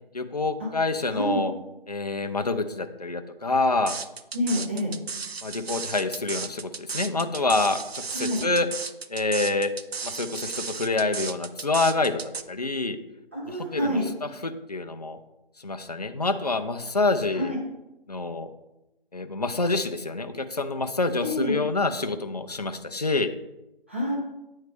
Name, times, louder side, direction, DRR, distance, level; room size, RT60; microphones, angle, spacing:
voice 1, 0.1-1.5 1.9-4.0 5.4-7.8 8.4-8.7 9.1-9.7 10.0-12.2 12.5-13.0 13.5-14.0 14.4-15.2 15.6-17.6 18.1-18.5 19.1-23.3, left 3 dB, 45° left, 8 dB, 0.4 m, -27 dB
voice 2, 1.1-1.4 4.3-4.9 8.1-8.4 13.3-14.0 17.3-17.6 21.2-21.6 23.9-24.2, equal, 15° right, -5 dB, 0.6 m, -27 dB
sound 1, 3.9-12.4, right 5 dB, 90° right, 0.5 m, -34 dB
9.2 x 3.2 x 3.3 m, 0.96 s
figure-of-eight pair, 155°, 30 cm